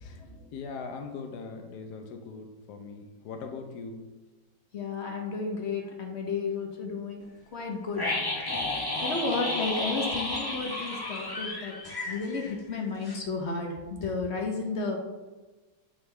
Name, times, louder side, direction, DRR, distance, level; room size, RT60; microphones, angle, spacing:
voice 1, 0.0-0.4 4.7-7.3 7.5-8.0 9.0-11.7 12.0-15.0, left 4 dB, 50° left, 1 dB, 0.9 m, -32 dB
voice 2, 0.5-4.0, left 4 dB, 65° left, 5 dB, 1.3 m, -40 dB
sound 1, 8.0-12.8 13.0-13.1, left 2 dB, 25° left, 0.5 m, -32 dB
8.5 x 3.8 x 3.3 m, 1.2 s
omnidirectional pair, 2.0 m